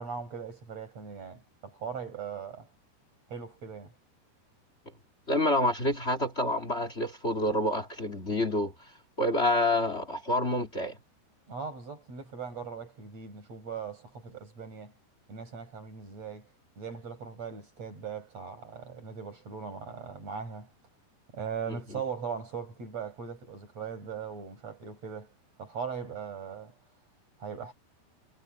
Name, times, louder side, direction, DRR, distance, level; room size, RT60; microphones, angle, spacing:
voice 1, 0.0-2.7 3.3-3.9 11.5-14.9 15.3-16.5 16.8-20.7 21.3-25.3 25.6-26.7 27.4-27.7, right 6 dB, 35° right, 8.2 m, -39 dB
voice 2, 5.3-8.9 9.2-11.0 21.7-22.0, left 1 dB, 20° left, 1.9 m, -28 dB
omnidirectional pair, 5.2 m